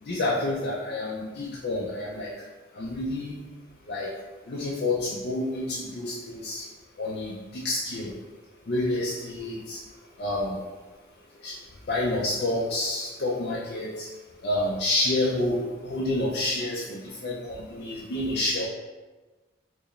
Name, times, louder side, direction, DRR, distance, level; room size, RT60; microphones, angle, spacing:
voice 1, 0.0-2.3 2.8-3.3 3.9-4.1 4.5-6.7 7.0-8.1 8.7-9.8 10.2-10.6 11.4-11.5 11.9-14.1 14.4-18.7, left 2 dB, 55° left, -5 dB, 0.4 m, -29 dB
4.6 x 2.0 x 3.1 m, 1.2 s
head